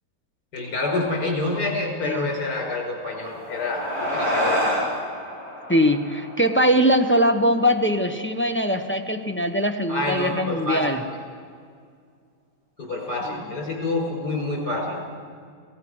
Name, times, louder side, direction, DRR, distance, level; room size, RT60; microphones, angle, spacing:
voice 1, 0.5-4.9 9.9-11.2 12.8-15.0, left 2 dB, 70° left, 1 dB, 5.2 m, -27 dB
sound 1, 3.0-7.8, equal, 60° right, 8.5 m, -29 dB
voice 2, 5.7-11.0, equal, 10° left, 6 dB, 0.7 m, -21 dB
28.5 x 16.5 x 6.3 m, 2.1 s
omnidirectional pair, 1.8 m